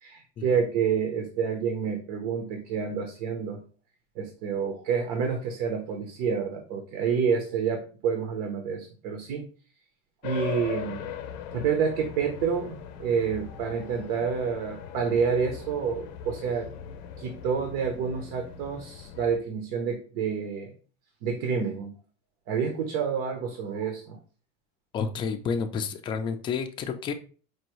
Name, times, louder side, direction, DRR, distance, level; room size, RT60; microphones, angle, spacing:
voice 1, 0.0-3.6 4.2-9.4 10.2-11.1 11.5-16.7 17.2-20.7 21.2-21.9 22.5-24.2, right 6 dB, 70° right, 4 dB, 0.8 m, -28 dB
sound 1, 10.2-19.4, left 8 dB, 85° left, 0.6 m, -40 dB
voice 2, 24.9-27.1, left 6 dB, 25° left, 7 dB, 0.4 m, -30 dB
4.7 x 2.6 x 3.0 m, 0.38 s
cardioid pair, 155°, 21 cm